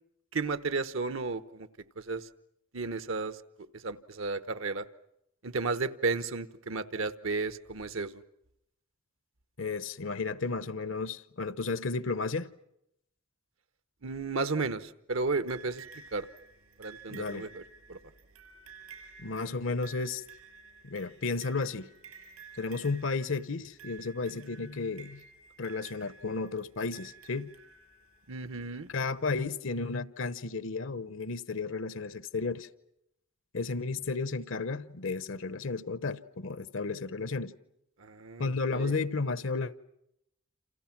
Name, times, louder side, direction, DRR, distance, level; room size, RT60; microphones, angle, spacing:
voice 1, 0.3-1.7 2.0-2.3 2.7-3.4 3.7-4.9 5.4-8.2 14.0-16.3 16.8-17.6 17.9-18.0 28.3-28.9 38.0-39.0, right 3 dB, 65° right, 1.1 m, -33 dB
voice 2, 9.6-12.5 17.1-17.5 19.2-20.2 20.8-21.9 22.6-25.2 25.6-27.5 28.9-32.7 33.5-37.5 38.4-39.8, left 4 dB, 60° left, 0.9 m, -33 dB
sound 1, 15.5-28.3 29.3-29.4, right 5 dB, 80° right, 7.2 m, -53 dB
29.0 x 28.0 x 6.0 m
head